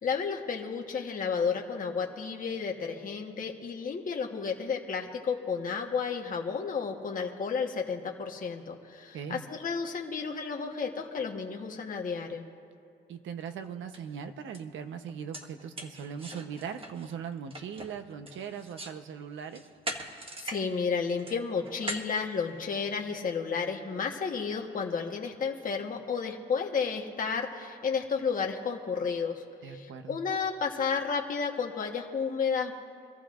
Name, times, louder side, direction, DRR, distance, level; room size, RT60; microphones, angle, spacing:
voice 1, 0.0-12.5 20.4-29.4 29.7-32.7, left 5 dB, 45° left, 1 dB, 1.4 m, -32 dB
voice 2, 9.1-9.4 13.1-19.7 29.6-30.2, right 7 dB, 75° right, 8 dB, 1.0 m, -40 dB
sound 1, 13.5-13.6 13.9-14.1 14.5-14.6 15.1-19.0 19.4-20.6 20.9-23.0, right 1 dB, 30° right, 1.6 m, -41 dB
25.5 x 14.0 x 2.5 m, 2.6 s
cardioid pair, 90°, 20 cm